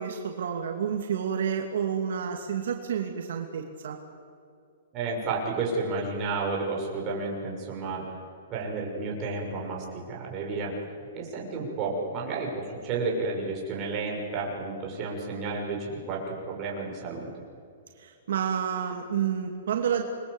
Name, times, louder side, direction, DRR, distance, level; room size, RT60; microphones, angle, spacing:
voice 1, 0.0-4.0 18.0-20.0, right 8 dB, 70° right, 2 dB, 2.8 m, -29 dB
voice 2, 4.9-8.0 8.5-10.7 11.1-17.3, right 3 dB, 25° right, -1 dB, 6.4 m, -31 dB
28.5 x 22.5 x 8.3 m, 2.5 s
hypercardioid pair, 165°, 0 cm